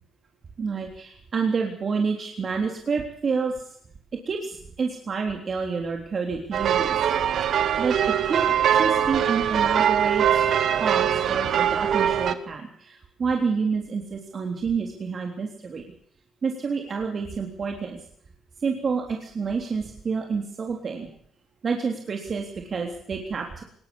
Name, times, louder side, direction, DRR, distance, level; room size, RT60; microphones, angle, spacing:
voice 1, 0.6-3.6 4.3-7.0 7.8-8.5 8.7-15.8 16.4-18.0 18.6-21.1 21.6-23.6, right 5 dB, 45° right, 2 dB, 3.6 m, -28 dB
sound 1, 6.5-12.3, right 9 dB, 65° right, 1.5 m, -22 dB
20.5 x 18.5 x 7.3 m, 0.65 s
cardioid pair, 90°, 0 cm